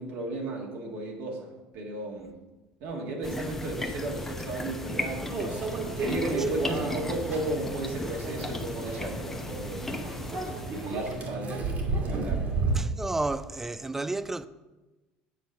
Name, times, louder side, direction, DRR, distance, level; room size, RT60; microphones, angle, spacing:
voice 1, 0.0-2.4 2.8-5.3 6.0-10.2 10.7-11.7 12.0-12.5, right 2 dB, 70° right, 1.8 m, -34 dB
sound 1, 3.2-11.3, left 2 dB, 10° left, 0.8 m, -36 dB
Microwave oven, 5.3-12.8, right 3 dB, 50° right, 1.8 m, -32 dB
voice 2, 12.7-14.5, right 2 dB, 10° right, 0.3 m, -31 dB
8.3 x 4.0 x 6.4 m
supercardioid pair, 115°, 3 cm